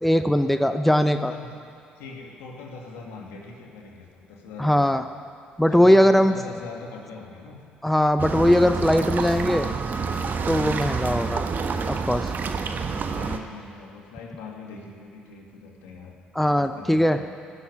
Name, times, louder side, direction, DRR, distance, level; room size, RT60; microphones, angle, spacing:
voice 1, 0.0-1.3 4.6-5.0 5.6-6.4 7.8-9.7 10.5-11.4 11.9-12.3 16.4-17.2, equal, 5° left, 8 dB, 0.8 m, -20 dB
voice 2, 0.7-1.6 2.0-4.8 5.7-7.6 12.8-16.1 16.6-17.3, left 4 dB, 75° left, 0 dB, 2.4 m, -41 dB
sound 1, 8.2-13.4, right 5 dB, 50° right, 1.2 m, -28 dB
17.5 x 7.1 x 9.8 m, 2.5 s
hypercardioid pair, 50°, 4 cm